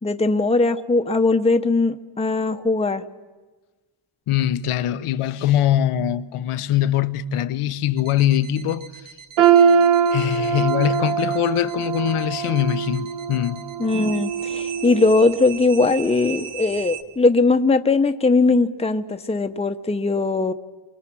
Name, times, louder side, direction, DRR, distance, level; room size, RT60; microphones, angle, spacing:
voice 1, 0.0-3.0 13.8-20.5, left 3 dB, 10° left, 0.9 m, -20 dB
voice 2, 4.3-8.9 9.6-9.7 10.1-13.6, left 11 dB, 90° left, 1.1 m, -22 dB
sound 1, 8.0-17.0, right 9 dB, 85° right, 2.1 m, -39 dB
sound 2, 9.4-15.3 15.7-15.9 16.7-16.8, right 7 dB, 70° right, 2.6 m, -22 dB
30.0 x 24.5 x 6.2 m
cardioid pair, 105°, 50 cm